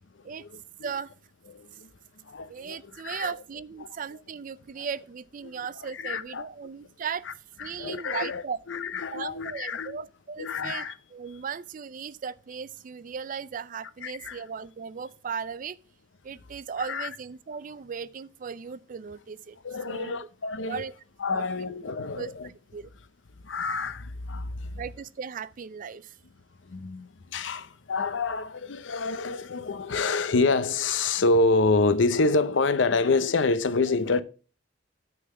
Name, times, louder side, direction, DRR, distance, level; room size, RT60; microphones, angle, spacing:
voice 1, 0.4-0.9 1.5-1.9 2.2-3.3 4.8-4.9 5.4-5.5 5.9-6.5 7.3-7.4 7.6-10.0 10.4-10.9 14.0-14.4 16.8-17.1 19.6-20.8 21.2-22.5 23.4-24.8 26.6-34.2, left 3 dB, 80° left, 0.6 m, -27 dB
voice 2, 2.5-7.3 7.6-8.6 9.1-15.8 16.2-19.6 19.9-20.2 20.6-20.9 21.3-21.5 22.2-22.9 24.8-26.2, right 6 dB, 45° right, 0.4 m, -37 dB
9.4 x 3.9 x 6.8 m
head